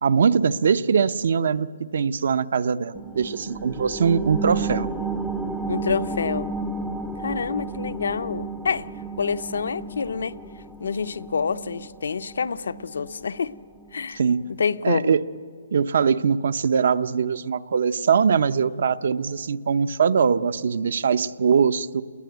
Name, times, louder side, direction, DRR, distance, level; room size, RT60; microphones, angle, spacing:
voice 1, 0.0-4.9 14.2-14.5 14.8-15.2 15.7-22.0, right 6 dB, 50° right, 14 dB, 0.7 m, -22 dB
sound 1, 2.9-14.0 14.5-14.6, right 3 dB, ahead, 0.6 m, -33 dB
voice 2, 5.7-6.5 7.2-8.9 9.2-10.3 10.8-13.5 13.9-14.2 14.6-15.2, left 5 dB, 65° left, 11 dB, 0.7 m, -27 dB
28.0 x 21.0 x 9.3 m, 2.1 s
hypercardioid pair, 175°, 0 cm